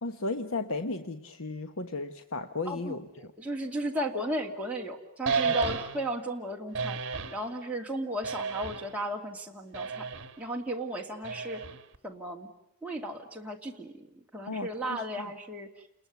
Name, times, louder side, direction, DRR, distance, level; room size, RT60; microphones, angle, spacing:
voice 1, 0.0-3.1 5.5-5.6 14.5-15.3, left 3 dB, 65° left, 8 dB, 1.1 m, -35 dB
voice 2, 2.6-7.0 7.3-10.1 10.4-11.6 12.0-12.5 12.8-15.7, right 1 dB, 5° right, -2 dB, 2.6 m, -35 dB
sound 1, 5.3-6.2 6.7-7.4 8.2-9.0 9.7-10.4 11.2-12.0, right 5 dB, 55° right, 1.6 m, -32 dB
29.5 x 21.5 x 9.5 m, 0.78 s
head